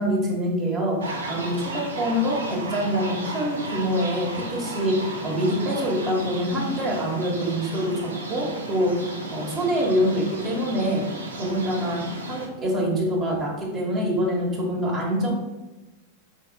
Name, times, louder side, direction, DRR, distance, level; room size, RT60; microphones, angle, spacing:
voice 1, 0.0-11.0 11.3-12.0 12.3-15.3, equal, 25° right, -3 dB, 1.4 m, -25 dB
sound 1, 1.0-12.5, right 2 dB, 75° right, 0.6 m, -34 dB
4.5 x 4.3 x 2.3 m, 1.0 s
figure-of-eight pair, 90°, 0 cm